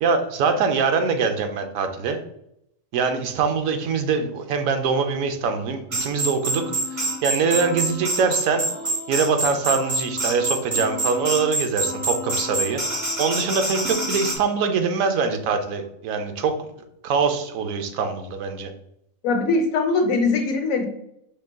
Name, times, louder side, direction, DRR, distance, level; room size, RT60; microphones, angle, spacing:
voice 1, 0.0-2.2 2.9-6.6 6.9-8.6 9.1-12.8 13.2-16.6 17.0-18.7, right 5 dB, 80° right, 7 dB, 1.0 m, -23 dB
sound 1, 5.9-14.4, right 1 dB, 35° right, 1.0 m, -26 dB
voice 2, 19.2-20.9, left 3 dB, 80° left, 4 dB, 1.2 m, -21 dB
5.3 x 3.6 x 2.2 m, 0.77 s
omnidirectional pair, 1.4 m